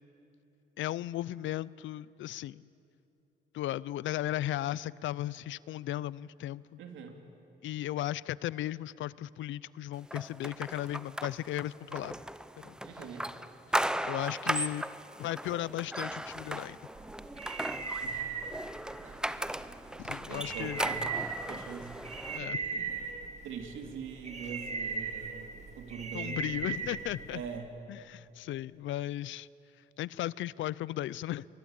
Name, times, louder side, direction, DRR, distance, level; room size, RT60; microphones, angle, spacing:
voice 1, 0.8-2.7 3.5-6.8 7.6-12.1 12.6-12.7 14.0-14.8 15.2-16.8 20.0-20.8 22.3-22.6 26.1-27.4 27.9-29.5 30.0-31.5, left 14 dB, 75° left, 21 dB, 0.5 m, -36 dB
voice 2, 6.8-7.2 12.8-13.3 18.0-18.1 20.3-21.1 21.5-22.0 22.4-22.9 23.4-26.8 27.3-27.7, right 6 dB, 80° right, 4 dB, 2.9 m, -43 dB
sound 1, 10.1-22.4, right 1 dB, 5° right, 0.6 m, -37 dB
sound 2, 17.0-27.6, right 5 dB, 35° right, 2.3 m, -39 dB
23.0 x 22.0 x 8.9 m, 2.8 s
cardioid pair, 90°, 20 cm